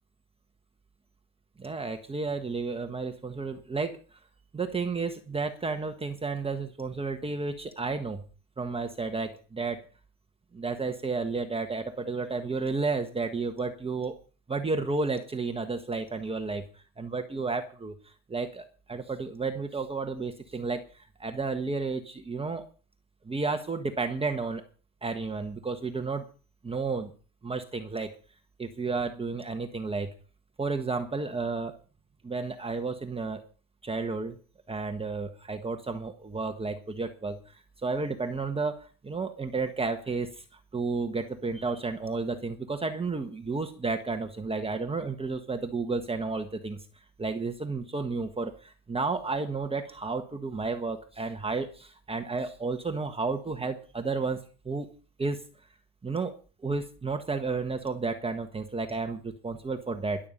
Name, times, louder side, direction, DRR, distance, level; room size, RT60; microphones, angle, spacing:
voice 1, 1.6-4.0 4.5-8.2 8.6-9.8 10.5-14.1 14.5-16.6 17.0-17.9 18.3-22.6 23.3-24.6 25.0-26.2 26.6-27.1 27.4-28.1 28.6-30.1 30.6-31.7 32.2-33.4 33.8-34.4 34.7-37.4 37.8-40.4 40.7-46.8 47.2-54.4 54.6-54.9 55.2-55.4 56.0-56.3 56.6-60.2, right 4 dB, 15° right, 5 dB, 1.3 m, -32 dB
13.5 x 11.5 x 5.3 m, 0.38 s
cardioid pair, 125°, 34 cm